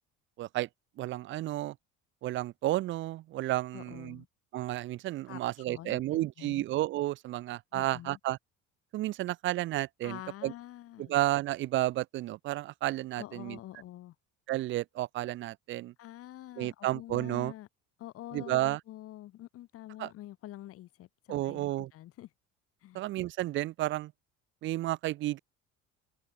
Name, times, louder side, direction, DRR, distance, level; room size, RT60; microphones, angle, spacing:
voice 1, 0.4-0.7 1.0-1.8 2.2-4.2 4.5-8.4 8.9-10.5 11.0-13.6 14.5-15.9 16.6-17.5 18.3-18.8 20.0-20.1 21.3-21.9 22.9-24.1 24.6-25.4, right 16 dB, 40° right, 0.5 m, -32 dB
voice 2, 3.7-4.3 5.3-5.4 5.7-6.6 7.7-8.2 10.0-11.1 13.1-14.1 16.0-17.7 18.0-22.3 22.8-23.0, left 14 dB, 50° left, 6.1 m, -46 dB
cardioid pair, 165°, 29 cm